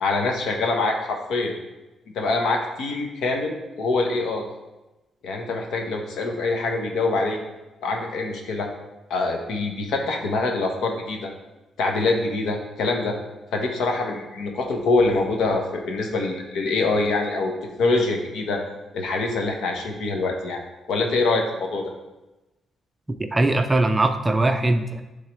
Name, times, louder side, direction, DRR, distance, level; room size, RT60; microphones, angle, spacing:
voice 1, 0.0-1.5 2.1-4.5 5.2-7.4 7.8-8.7 9.1-11.3 11.8-13.2 13.5-17.5 17.8-18.6 18.9-20.6 20.9-21.9, left 3 dB, 80° left, 2 dB, 1.1 m, -24 dB
voice 2, 23.3-25.0, right 2 dB, 15° right, 7 dB, 0.4 m, -20 dB
10.5 x 3.7 x 3.2 m, 1.0 s
cardioid pair, 135°, 0 cm